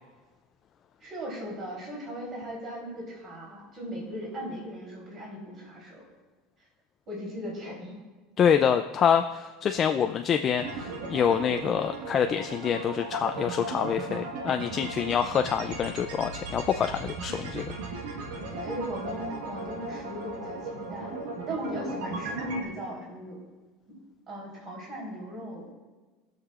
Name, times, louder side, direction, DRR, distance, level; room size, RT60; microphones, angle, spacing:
voice 1, 1.0-6.0 7.1-8.0 18.4-21.1 21.5-23.4 24.3-25.7, equal, 30° right, -3 dB, 3.4 m, -37 dB
voice 2, 8.4-17.6, left 8 dB, 25° left, 6 dB, 0.3 m, -26 dB
sound 1, 10.6-22.6, right 2 dB, 90° right, 1.4 m, -37 dB
19.0 x 6.6 x 2.4 m, 1.3 s
cardioid pair, 165°, 0 cm